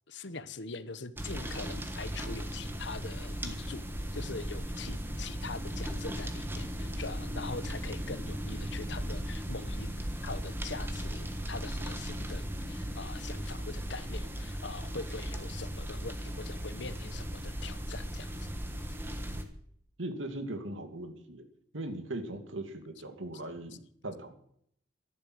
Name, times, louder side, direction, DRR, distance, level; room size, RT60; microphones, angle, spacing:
voice 1, 0.1-3.9 4.1-9.9 10.2-18.5, left 4 dB, 65° left, 1.0 m, -43 dB
sound 1, 1.2-19.4, equal, 10° right, 1.4 m, -37 dB
voice 2, 20.0-21.4 21.7-24.3, right 1 dB, 80° right, 2.4 m, -39 dB
13.5 x 11.0 x 8.0 m
head